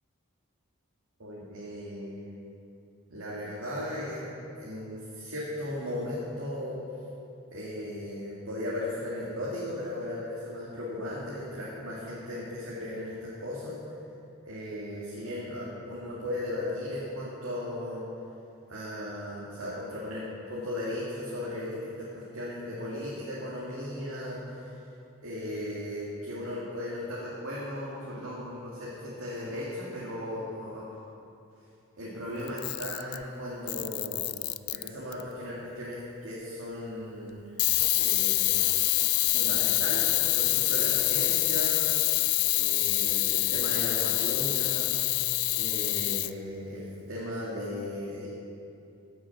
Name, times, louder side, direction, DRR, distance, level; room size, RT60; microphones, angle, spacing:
voice 1, 1.2-2.3 3.1-4.3 4.6-6.7 7.5-13.8 14.5-18.0 18.7-24.7 25.2-30.9 32.0-34.2 34.7-37.4 37.9-38.7 39.3-41.9 42.5-45.0 45.6-48.3, left 1 dB, 70° right, -7 dB, 2.2 m, -36 dB
Camera, 32.5-33.2 33.7-35.2 37.6-46.3, left 19 dB, 80° left, 0.3 m, -26 dB
16.0 x 6.4 x 5.9 m, 2.6 s
head